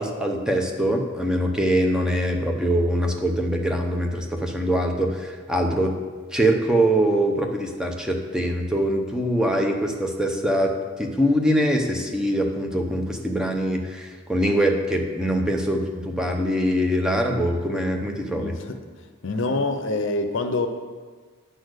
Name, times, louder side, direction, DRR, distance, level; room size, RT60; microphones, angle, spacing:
voice 1, 0.0-5.9 6.3-10.7 11.0-18.6, equal, 5° right, 2 dB, 0.7 m, -23 dB
voice 2, 18.4-18.8 19.2-20.7, left 2 dB, 60° left, 8 dB, 0.7 m, -25 dB
9.2 x 4.2 x 6.4 m, 1.5 s
head